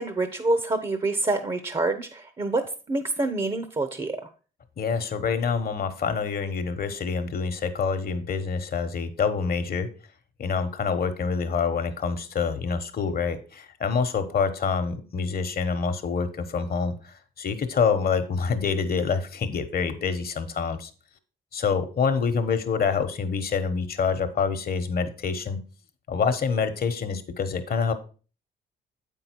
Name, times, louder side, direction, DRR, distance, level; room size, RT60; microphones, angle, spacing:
voice 1, 0.0-4.2, right 2 dB, 25° right, 9 dB, 0.7 m, -27 dB
voice 2, 4.8-9.9 10.4-20.9 21.5-25.6 26.1-27.9, left 5 dB, 50° left, 9 dB, 1.1 m, -26 dB
7.7 x 5.4 x 4.5 m, 0.37 s
cardioid pair, 90°, 20 cm